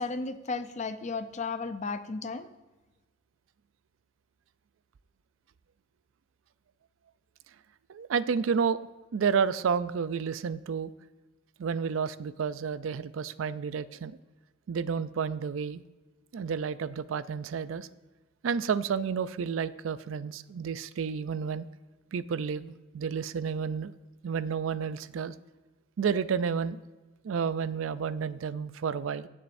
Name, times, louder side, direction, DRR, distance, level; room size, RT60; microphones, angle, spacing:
voice 1, 0.0-2.5, left 4 dB, 35° left, 10 dB, 0.5 m, -34 dB
voice 2, 7.9-8.9 9.1-10.9 11.6-14.2 14.7-15.8 16.3-17.9 18.4-21.7 22.1-23.9 24.2-25.3 26.0-26.8 27.2-29.3, right 6 dB, 85° right, 15 dB, 0.4 m, -30 dB
16.0 x 7.3 x 2.6 m, 1.2 s
head